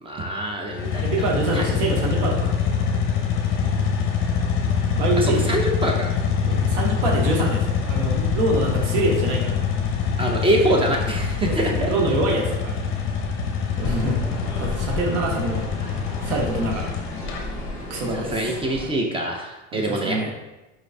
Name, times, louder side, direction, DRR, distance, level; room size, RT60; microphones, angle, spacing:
voice 1, 0.0-1.6 5.2-6.1 10.2-11.9 18.1-20.3, right 1 dB, 15° right, 1 dB, 0.4 m, -25 dB
sound 1, 0.7-17.4, left 7 dB, 35° left, 0.6 m, -24 dB
voice 2, 1.0-2.6 4.9-5.5 6.5-9.7 11.4-12.8 13.8-14.3 14.6-15.7 16.2-17.0 17.9-18.4 19.7-20.3, right 2 dB, 75° right, 1 dB, 1.0 m, -25 dB
sound 2, 8.0-14.0, right 2 dB, 50° right, 1.0 m, -36 dB
sound 3, 13.8-18.9, left 2 dB, 10° left, 1.5 m, -33 dB
4.7 x 3.1 x 2.6 m, 1.0 s
supercardioid pair, 105°, 37 cm